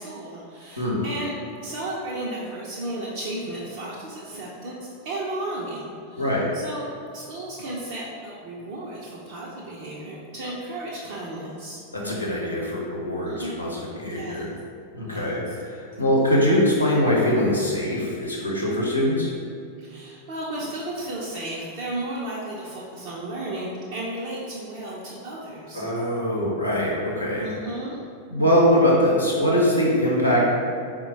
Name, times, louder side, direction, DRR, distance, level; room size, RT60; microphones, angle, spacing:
voice 1, 0.0-1.3 1.6-6.9 7.1-11.8 13.3-13.6 14.0-14.5 15.1-15.6 19.8-25.8 27.4-28.0, right 1 dB, 50° right, -6 dB, 0.5 m, -34 dB
voice 2, 11.9-14.5 14.9-19.3 25.7-27.5 28.3-30.5, equal, 85° left, -5 dB, 0.8 m, -22 dB
4.3 x 2.1 x 4.0 m, 2.4 s
figure-of-eight pair, 90°, 0 cm